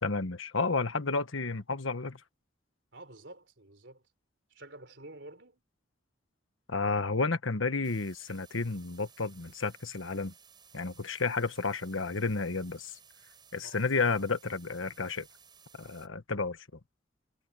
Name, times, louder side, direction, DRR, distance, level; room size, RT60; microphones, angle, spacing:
voice 1, 0.0-2.2 6.7-10.3 10.7-12.9 13.5-15.3 15.8-16.6, left 3 dB, 85° left, 1.4 m, -31 dB
voice 2, 2.9-4.0 4.5-5.6 13.6-13.9, right 2 dB, 65° right, 4.4 m, -49 dB
sound 1, 7.8-16.1, right 7 dB, 25° right, 5.2 m, -58 dB
head